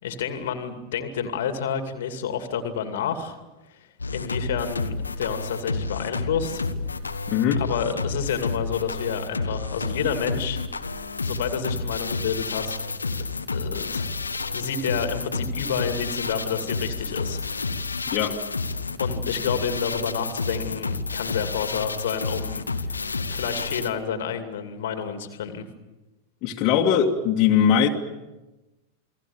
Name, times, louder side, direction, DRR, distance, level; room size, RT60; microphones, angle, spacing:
voice 1, 0.0-3.4 3.7-3.8 4.1-6.6 7.5-10.6 11.2-13.2 13.5-14.2 14.5-17.4 19.0-23.0 23.3-25.6, left 7 dB, 55° left, 7 dB, 2.4 m, -29 dB
sound 1, 4.0-23.9, left 3 dB, 75° left, 1.3 m, -30 dB
voice 2, 7.3-7.6 18.1-18.4 26.4-27.9, left 8 dB, 40° left, 0 dB, 2.3 m, -20 dB
29.0 x 21.0 x 7.2 m, 1.1 s
figure-of-eight pair, 90°, 0 cm